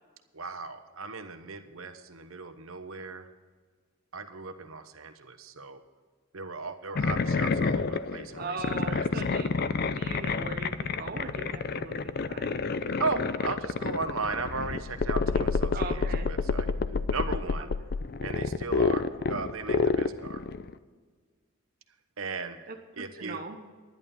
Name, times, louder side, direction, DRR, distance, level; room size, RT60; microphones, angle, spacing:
voice 1, 0.3-3.3 4.1-5.8 6.3-9.2 13.0-16.7 17.1-17.7 18.2-20.4 22.2-22.6 22.9-23.4, right 4 dB, 85° right, 9 dB, 1.1 m, -36 dB
sound 1, 7.0-20.7, left 4 dB, 50° left, 0.5 m, -29 dB
voice 2, 8.4-9.5 9.9-12.6 15.7-16.3 17.6-17.7 22.7-23.6, right 4 dB, 45° right, 3 dB, 0.8 m, -39 dB
11.0 x 10.5 x 5.4 m, 1.5 s
head